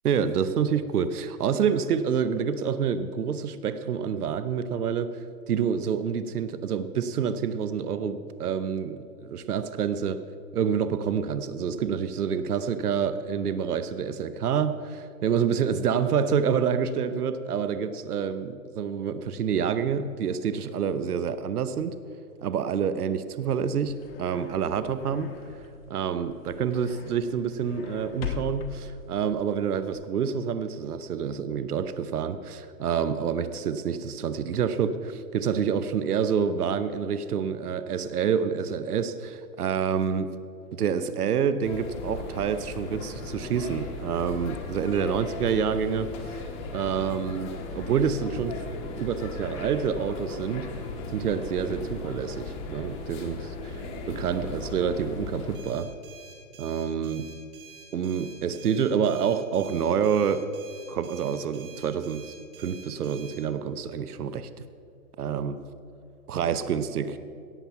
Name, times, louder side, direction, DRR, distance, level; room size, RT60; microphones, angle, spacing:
voice 1, 0.0-5.1 5.5-10.2 10.5-21.9 22.4-25.3 25.9-40.3 40.7-46.4 46.7-48.6 49.0-50.7 51.1-55.9 56.6-57.3 57.9-60.5 60.9-64.5 65.2-65.6 66.3-67.2, right 7 dB, 80° right, 12 dB, 1.0 m, -27 dB
sound 1, 23.5-29.9, left 5 dB, 40° left, 1.1 m, -41 dB
sound 2, 41.6-55.6, left 3 dB, 20° left, 1.0 m, -37 dB
sound 3, 55.5-63.4, right 5 dB, 20° right, 1.3 m, -49 dB
17.0 x 7.2 x 5.7 m, 2.4 s
hypercardioid pair, 160°, 45 cm